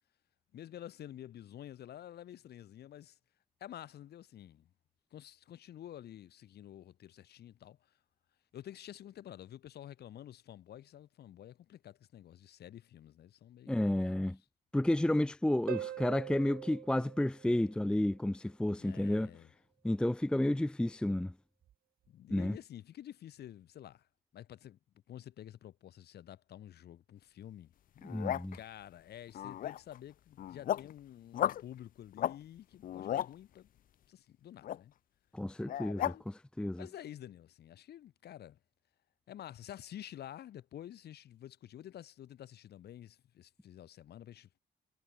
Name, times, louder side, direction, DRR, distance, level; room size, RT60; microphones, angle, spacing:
voice 1, 0.5-3.2 3.6-4.7 5.1-7.8 8.5-14.1 18.8-19.5 22.1-24.1 24.3-24.8 25.1-27.7 28.5-33.7 34.1-34.9 36.0-36.2 36.8-38.6 39.3-44.5, left 11 dB, 85° left, 7.6 m, -50 dB
voice 2, 13.7-14.4 14.7-19.3 19.8-21.3 22.3-22.6 28.0-28.6 35.3-36.9, left 1 dB, 5° left, 0.5 m, -31 dB
Harp, 15.7-18.2 21.7-21.8, right 12 dB, 65° right, 0.5 m, -43 dB
sound 1, 28.0-28.6 29.3-30.0 30.3-30.9 31.3-31.6 32.1-32.4 32.7-33.3 34.6-34.8 35.7-36.2, left 11 dB, 60° left, 0.4 m, -35 dB
cardioid pair, 120°, 16 cm